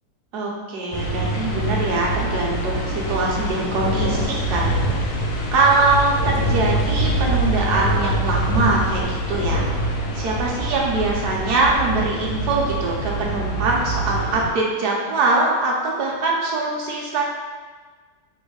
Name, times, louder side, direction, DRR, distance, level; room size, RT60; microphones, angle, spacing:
voice 1, 0.3-4.7 5.5-9.6 10.1-17.2, right 3 dB, 60° right, -2 dB, 1.1 m, -22 dB
sound 1, 0.9-14.5, right 1 dB, 80° left, 1.6 m, -24 dB
3.5 x 3.2 x 4.7 m, 1.4 s
omnidirectional pair, 2.4 m